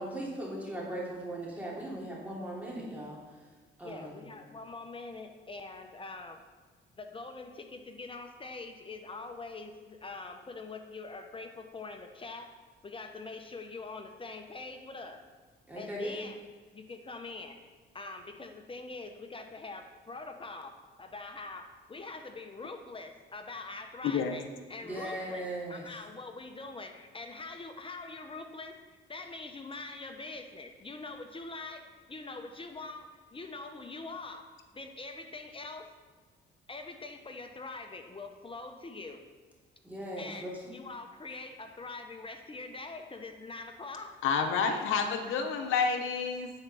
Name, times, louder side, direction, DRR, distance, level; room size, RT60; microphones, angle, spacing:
voice 1, 0.0-3.2 3.8-4.3 15.7-16.2 24.8-25.9 39.8-40.5, right 1 dB, 5° right, -5 dB, 3.1 m, -38 dB
voice 2, 3.8-6.4 7.0-12.5 12.8-15.2 15.7-16.4 16.7-17.6 17.9-35.9 36.7-39.2 40.2-44.2, left 3 dB, 25° left, 5 dB, 0.8 m, -44 dB
voice 3, 24.0-24.4 44.2-46.5, left 6 dB, 85° left, 5 dB, 0.8 m, -29 dB
9.6 x 4.7 x 6.1 m, 1.4 s
cardioid pair, 90°, 20 cm